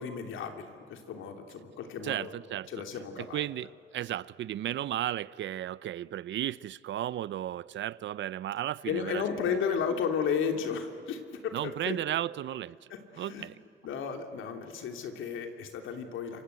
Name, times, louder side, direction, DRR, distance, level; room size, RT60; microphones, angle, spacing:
voice 1, 0.0-2.3 2.7-3.4 8.8-12.0 12.9-13.5 13.8-16.4, left 6 dB, 80° left, 3.2 m, -34 dB
voice 2, 2.0-2.7 3.2-9.6 11.5-12.8 13.2-13.5, right 12 dB, 70° right, 0.7 m, -34 dB
28.0 x 25.5 x 8.3 m
cardioid pair, 90°, 20 cm